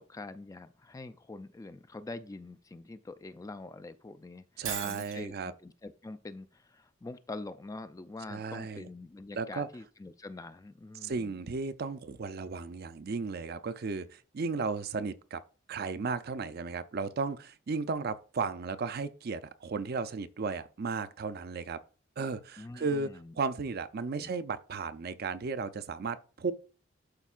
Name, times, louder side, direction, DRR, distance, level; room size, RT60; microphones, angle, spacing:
voice 1, 0.0-11.4 22.6-23.3 24.1-24.4, left 2 dB, 15° left, 0.3 m, -45 dB
voice 2, 4.6-5.5 8.3-8.9 9.4-9.7 11.0-15.4 15.7-21.8 22.2-23.1 23.4-26.5, right 4 dB, 55° right, 0.5 m, -35 dB
Shatter, 4.6-5.2, right 8 dB, 85° right, 1.8 m, -37 dB
11.5 x 4.5 x 2.4 m
head